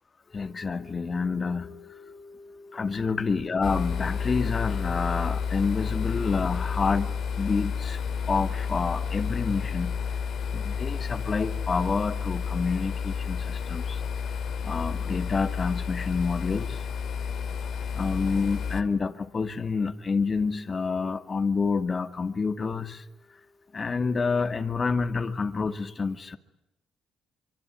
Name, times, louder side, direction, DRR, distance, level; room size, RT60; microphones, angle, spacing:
voice 1, 0.3-8.0 8.3-10.0 10.5-14.0 14.6-16.8 17.9-23.1 23.7-26.4, left 4 dB, 35° left, 9 dB, 2.3 m, -28 dB
sound 1, 3.6-18.8, left 6 dB, 60° left, 2.5 m, -31 dB
25.5 x 25.0 x 9.3 m, 0.90 s
cardioid pair, 95°, 0 cm